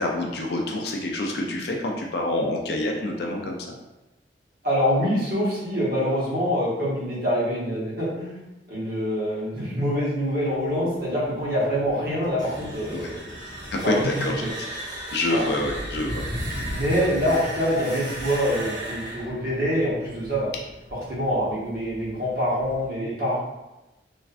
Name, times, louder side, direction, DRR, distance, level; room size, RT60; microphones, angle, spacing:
voice 1, 0.0-3.6 12.9-13.1 13.7-14.3 15.1-16.2, left 2 dB, 60° left, 1 dB, 0.4 m, -27 dB
voice 2, 4.6-8.4 8.7-13.2 13.8-14.5 15.3-15.4 16.5-20.5 20.9-23.4, equal, 55° right, -7 dB, 0.9 m, -25 dB
sound 1, 10.3-22.8, equal, 40° left, 0.9 m, -40 dB
sound 2, 12.2-21.0, right 1 dB, 20° right, 0.7 m, -37 dB
2.5 x 2.2 x 2.4 m, 0.99 s
head